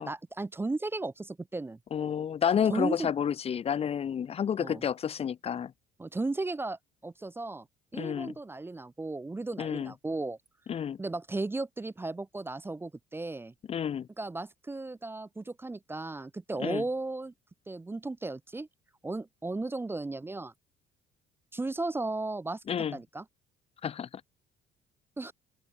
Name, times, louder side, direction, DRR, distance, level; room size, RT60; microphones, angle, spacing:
voice 1, 0.0-1.8 2.7-3.1 4.6-4.8 6.0-7.7 7.9-10.4 11.0-13.5 14.2-17.3 17.7-18.7 19.0-20.5 21.5-22.6 22.9-23.2 25.2-25.3, right 2 dB, 15° right, 0.7 m, -35 dB
voice 2, 1.9-5.7 7.9-8.3 9.6-9.9 10.7-11.0 13.7-14.1 16.6-16.8 22.7-23.0 23.8-24.1, left 8 dB, 35° left, 0.7 m, -30 dB
open air
cardioid pair, 110°, 17 cm